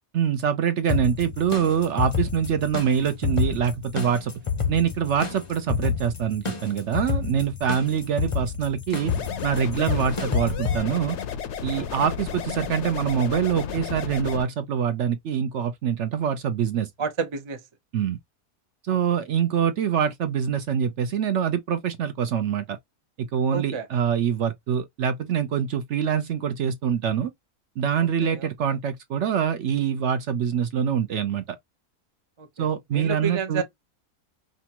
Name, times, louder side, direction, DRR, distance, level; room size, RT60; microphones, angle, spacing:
voice 1, 0.1-4.3 4.7-9.1 9.4-11.2 11.6-16.9 17.9-18.2 18.8-22.8 23.2-27.3 27.8-31.6 32.6-33.6, right 8 dB, 60° right, 0.8 m, -25 dB
sound 1, 0.9-10.8, left 6 dB, 35° left, 0.6 m, -29 dB
sound 2, 9.0-14.4, left 7 dB, 60° left, 0.9 m, -33 dB
voice 2, 17.0-17.6 18.9-19.0 23.5-23.9 28.2-28.7 32.4-32.7 32.9-33.6, right 5 dB, 35° right, 0.5 m, -30 dB
5.1 x 2.3 x 2.9 m
omnidirectional pair, 1.5 m